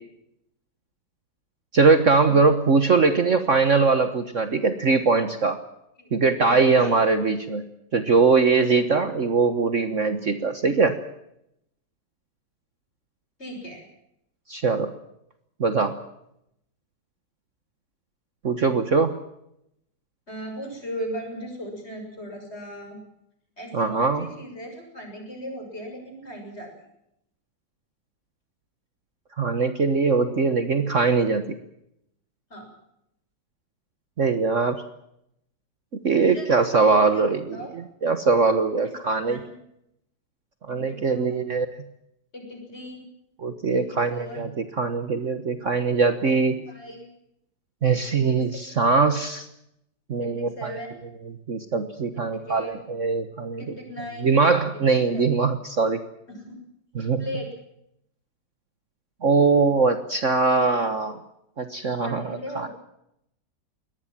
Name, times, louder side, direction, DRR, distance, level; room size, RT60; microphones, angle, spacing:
voice 1, 1.7-5.6 6.1-7.6 7.9-11.0 14.5-14.9 15.6-16.0 18.4-19.1 23.7-24.3 29.4-31.5 34.2-34.8 35.9-37.6 38.0-39.4 40.7-41.7 43.4-44.5 44.8-46.6 47.8-49.5 50.1-50.7 51.5-53.7 54.2-56.0 57.0-57.2 59.2-61.2 61.6-62.7, right 4 dB, 45° right, 9 dB, 1.6 m, -21 dB
voice 2, 6.4-6.9 13.4-13.9 20.3-23.0 23.6-26.7 32.5-32.7 36.1-37.3 37.5-37.7 38.8-38.9 39.2-39.6 40.7-41.4 42.3-43.0 43.7-44.4 46.7-47.1 48.1-48.6 50.2-50.9 52.3-52.7 53.6-54.4 55.1-55.2 56.3-56.6 57.2-57.6 62.0-62.7, equal, 35° left, 4 dB, 7.0 m, -37 dB
23.0 x 19.0 x 7.5 m, 0.78 s
omnidirectional pair, 1.9 m